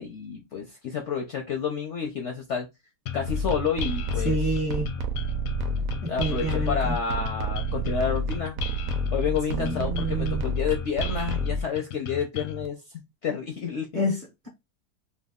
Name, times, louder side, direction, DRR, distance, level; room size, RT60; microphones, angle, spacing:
voice 1, 0.0-2.7 3.1-4.4 6.1-8.6 9.1-12.8 13.2-13.9, left 7 dB, 65° left, 0.7 m, -29 dB
sound 1, 3.1-12.7, left 8 dB, 80° left, 1.1 m, -36 dB
sound 2, 3.3-11.6, right 1 dB, 65° right, 0.9 m, -29 dB
voice 2, 4.2-4.9 6.0-7.0 9.5-10.5 13.9-14.5, equal, 40° right, 0.7 m, -29 dB
3.0 x 2.3 x 3.5 m
omnidirectional pair, 1.7 m